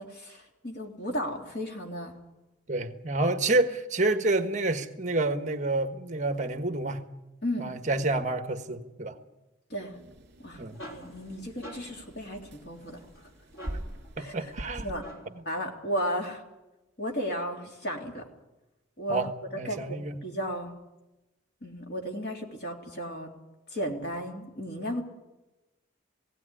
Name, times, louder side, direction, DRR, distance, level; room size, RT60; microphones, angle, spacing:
voice 1, 0.0-2.1 7.4-7.7 9.7-9.9 10.4-10.6 10.9-13.0 14.2-14.5 14.8-15.1 15.4-16.4 17.0-18.2 19.0-19.2 19.7-20.7 21.6-23.3 23.7-25.0, equal, 55° left, 1 dB, 3.4 m, -34 dB
voice 2, 2.7-7.0 7.6-9.2 10.6-10.8 14.2-14.9 19.1-20.2, right 2 dB, 35° right, 7 dB, 1.3 m, -28 dB
sound 1, 9.9-15.0, right 1 dB, 55° right, 2.3 m, -43 dB
sound 2, 10.3-15.5, equal, 85° left, 3.5 m, -48 dB
19.0 x 16.5 x 9.9 m, 1.0 s
head